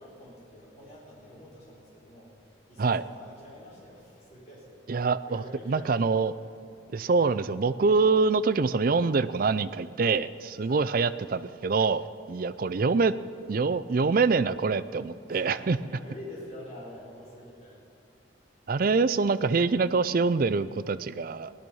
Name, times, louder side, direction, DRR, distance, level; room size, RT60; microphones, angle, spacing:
voice 1, 0.0-6.0 10.6-10.9 15.3-17.8, left 1 dB, 35° left, -7 dB, 4.1 m, -47 dB
voice 2, 4.9-6.3 6.9-12.0 12.3-13.1 13.5-15.8 18.7-21.5, right 4 dB, 45° right, 14 dB, 0.4 m, -25 dB
18.0 x 12.0 x 5.5 m, 2.5 s
head